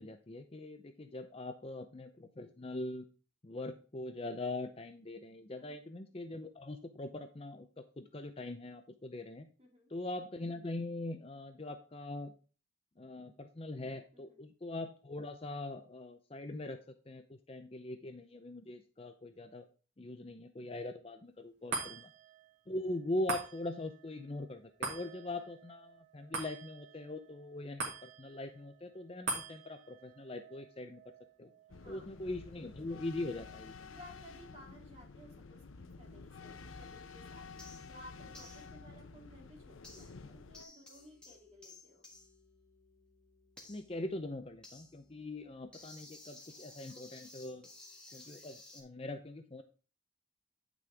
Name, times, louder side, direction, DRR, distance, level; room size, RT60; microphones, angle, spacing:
voice 1, 0.0-3.1 3.4-9.5 9.9-12.3 13.0-19.7 20.0-22.1 22.7-31.0 31.4-31.5 31.9-33.9 43.7-47.6 48.1-49.6, left 2 dB, 30° left, 8 dB, 0.6 m, -42 dB
voice 2, 5.5-5.8 9.6-9.9 14.1-14.4 21.7-22.0 31.7-32.1 33.9-42.1, equal, 30° right, -1 dB, 2.8 m, -57 dB
sound 1, 21.7-34.3 34.7-34.8, right 3 dB, 55° right, 2.7 m, -45 dB
Morocco-train, 31.7-40.6, left 4 dB, 85° left, 0.7 m, -51 dB
sound 2, 37.6-38.0 38.3-38.7 39.8-40.3 40.5-48.8, left 2 dB, 5° left, 1.4 m, -56 dB
9.6 x 6.1 x 3.5 m, 0.36 s
head